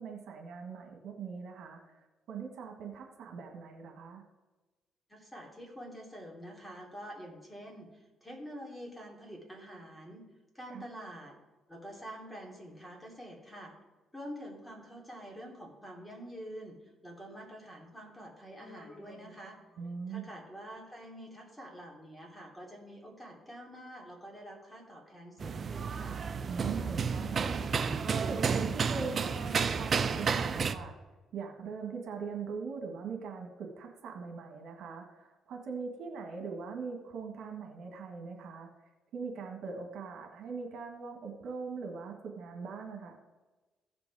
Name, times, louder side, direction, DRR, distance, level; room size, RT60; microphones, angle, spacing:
voice 1, 0.0-4.2 10.7-10.8 19.8-20.3 26.5-30.9 31.3-38.7 39.1-43.2, right 5 dB, 75° right, 2 dB, 1.6 m, -41 dB
voice 2, 5.1-10.2 10.5-11.4 11.7-13.7 14.1-19.6 20.1-26.2, equal, 10° left, -1 dB, 3.1 m, -47 dB
Human voice, 18.6-20.3, left 2 dB, 60° left, 2.7 m, -55 dB
sound 1, 25.4-30.7, right 5 dB, 45° right, 0.6 m, -31 dB
15.5 x 5.3 x 4.8 m, 1.2 s
cardioid pair, 90°, 0 cm